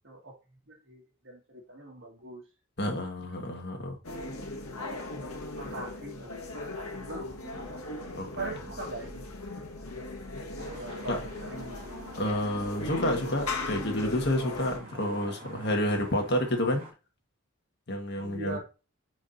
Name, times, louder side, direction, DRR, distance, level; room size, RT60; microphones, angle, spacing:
voice 1, 0.0-0.4 0.7-2.4 5.1-5.3 5.6-7.8 8.2-9.3 10.7-12.1 18.2-18.6, right 2 dB, 55° right, 2.1 m, -42 dB
voice 2, 2.8-3.9 8.2-8.5 11.1-11.2 12.2-16.8 17.9-18.6, left 1 dB, 50° left, 1.7 m, -29 dB
sound 1, 4.0-14.8, left 2 dB, 90° left, 1.6 m, -38 dB
sound 2, 10.6-16.9, right 1 dB, 40° right, 2.5 m, -48 dB
9.9 x 4.8 x 2.8 m
head